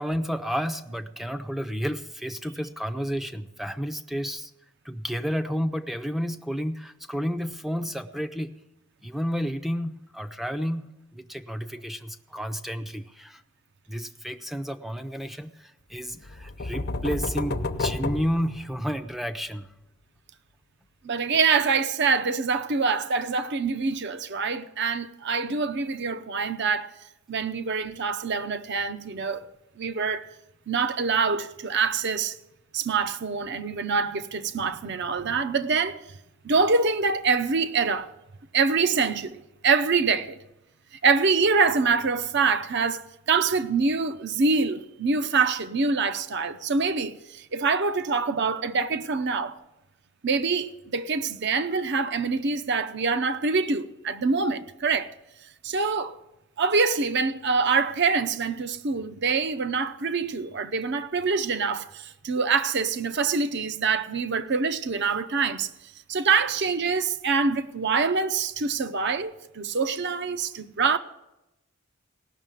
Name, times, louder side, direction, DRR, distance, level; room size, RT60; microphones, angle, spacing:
voice 1, 0.0-4.5 4.8-8.6 9.0-13.4 13.9-19.7, equal, ahead, 0.5 m, -31 dB
sound 1, 16.2-19.2, left 2 dB, 50° left, 0.7 m, -31 dB
voice 2, 21.0-26.9 27.3-29.4 29.8-30.3 30.7-32.4 32.7-36.0 36.4-38.1 38.5-40.4 41.0-49.6 50.2-55.1 55.6-56.2 56.6-65.7 66.1-71.0, right 4 dB, 55° right, 0.7 m, -25 dB
17.5 x 6.4 x 9.1 m
head